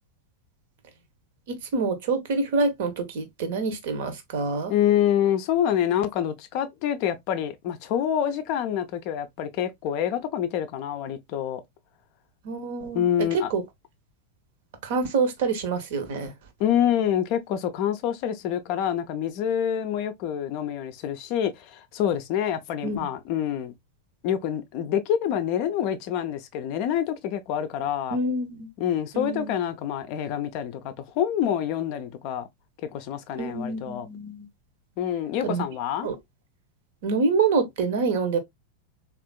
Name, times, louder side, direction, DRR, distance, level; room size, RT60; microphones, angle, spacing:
voice 1, 1.5-4.7 12.4-13.6 14.8-16.3 22.8-23.1 28.1-28.7 29.1-29.5 33.4-34.5 35.4-35.6 36.0-36.2 37.0-38.4, right 4 dB, 55° right, 0.8 m, -26 dB
voice 2, 4.7-11.6 12.9-13.5 16.6-23.7 24.2-28.2 28.8-32.5 32.9-34.1 35.0-36.1, left 10 dB, 45° left, 0.4 m, -26 dB
3.5 x 2.4 x 2.2 m
figure-of-eight pair, 90°, 0 cm